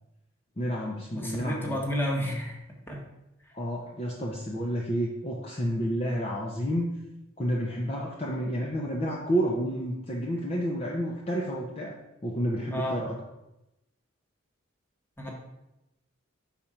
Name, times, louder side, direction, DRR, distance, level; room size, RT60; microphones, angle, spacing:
voice 1, 0.6-1.8 3.5-6.9 7.4-11.9 12.2-13.1, equal, 30° left, -2 dB, 0.7 m, -30 dB
voice 2, 1.1-2.6 2.9-3.0 12.7-13.0 15.2-15.3, equal, 10° left, -1 dB, 1.1 m, -31 dB
5.8 x 4.3 x 4.9 m, 0.91 s
head